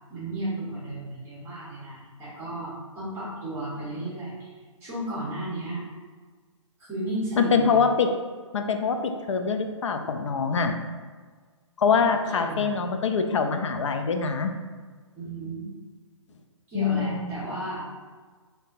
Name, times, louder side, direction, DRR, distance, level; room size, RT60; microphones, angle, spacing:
voice 1, 0.1-4.5 4.8-5.9 6.9-7.7 12.3-12.7 15.1-15.7 16.7-17.8, right 1 dB, 15° right, -10 dB, 1.2 m, -33 dB
voice 2, 7.4-8.1 8.5-10.7 11.8-14.5 16.7-17.4, left 5 dB, 65° left, 6 dB, 0.4 m, -24 dB
3.4 x 2.7 x 2.5 m, 1.5 s
figure-of-eight pair, 135°, 17 cm